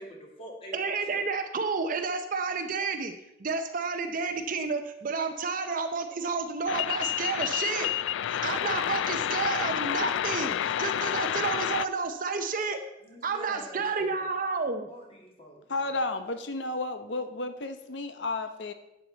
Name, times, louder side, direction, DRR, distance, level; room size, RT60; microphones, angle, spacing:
voice 1, 0.0-1.2 13.0-14.3 14.9-15.7, right 1 dB, 30° left, 0 dB, 2.2 m, -46 dB
voice 2, 0.7-3.1 3.4-7.9 8.3-12.8 13.2-14.9, right 4 dB, 45° right, 6 dB, 0.7 m, -30 dB
sound 1, 6.7-11.9, left 10 dB, 85° left, 0.3 m, -29 dB
voice 3, 15.7-18.7, left 2 dB, 65° left, 9 dB, 0.9 m, -32 dB
11.5 x 8.6 x 4.0 m, 0.89 s
head